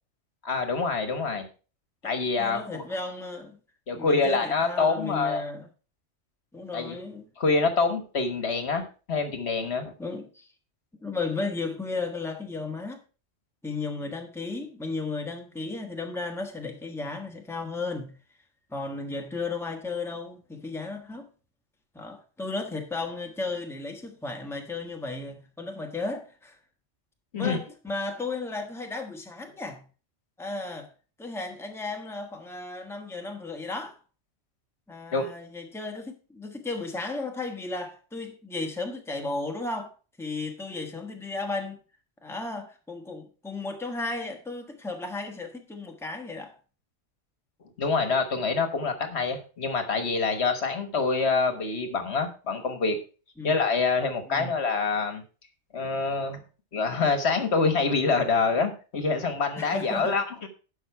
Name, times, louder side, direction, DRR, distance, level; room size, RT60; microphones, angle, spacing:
voice 1, 0.4-1.5 2.0-2.8 3.9-5.4 6.7-6.9 7.4-8.8 9.1-9.9 27.3-27.6 35.1-35.3 47.8-53.0 53.4-55.2 55.7-56.4 56.7-60.5, left 4 dB, 65° left, 1.5 m, -26 dB
voice 2, 2.0-3.6 3.9-5.7 6.5-7.3 10.0-10.5 11.0-13.0 13.6-18.1 18.7-21.3 21.9-26.6 27.3-29.8 30.4-30.9 31.2-34.0 34.9-39.9 40.2-41.8 42.2-46.6 53.4-53.5 54.3-54.5 59.6-60.5, left 3 dB, ahead, 1.3 m, -34 dB
12.0 x 5.3 x 4.6 m
omnidirectional pair, 1.2 m